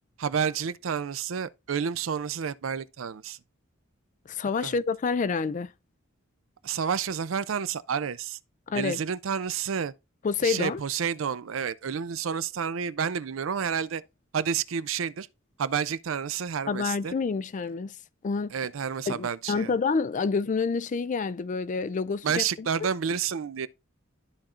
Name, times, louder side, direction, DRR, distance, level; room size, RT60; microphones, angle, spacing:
voice 1, 0.2-3.4 4.6-4.8 6.6-8.4 8.7-9.9 10.4-14.0 14.3-15.3 15.6-17.1 18.5-19.7 22.2-23.7, right 7 dB, 75° right, 0.5 m, -30 dB
voice 2, 4.3-5.7 8.7-9.0 10.2-10.8 16.7-17.9 18.2-18.5 19.1-22.7, left 5 dB, 40° left, 0.4 m, -28 dB
13.0 x 4.3 x 2.5 m
head